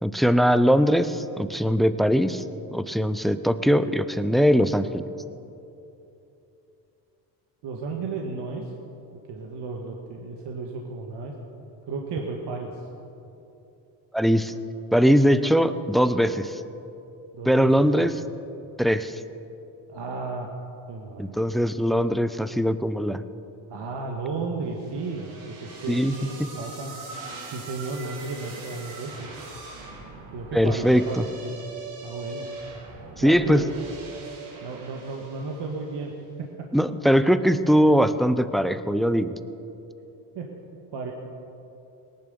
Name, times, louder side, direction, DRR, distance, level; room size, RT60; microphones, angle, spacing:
voice 1, 0.0-2.4 2.7-5.0 14.1-14.5 14.9-16.6 17.5-18.2 18.8-19.2 21.2-23.2 25.9-26.1 30.5-31.2 33.2-33.7 36.7-39.3, equal, ahead, 12 dB, 0.6 m, -21 dB
voice 2, 7.6-8.7 9.3-11.3 11.9-12.9 17.3-17.7 18.0-18.1 19.9-20.5 20.9-21.4 23.7-26.9 27.5-29.3 30.3-31.2 31.4-31.6 32.0-32.5 33.2-33.7 34.6-36.1 40.3-40.5 40.9-41.1, right 4 dB, 55° right, 1 dB, 1.8 m, -33 dB
sound 1, 24.8-36.0, right 3 dB, 80° right, 3.4 m, -41 dB
18.5 x 10.5 x 6.9 m, 2.9 s
supercardioid pair, 85°, 48 cm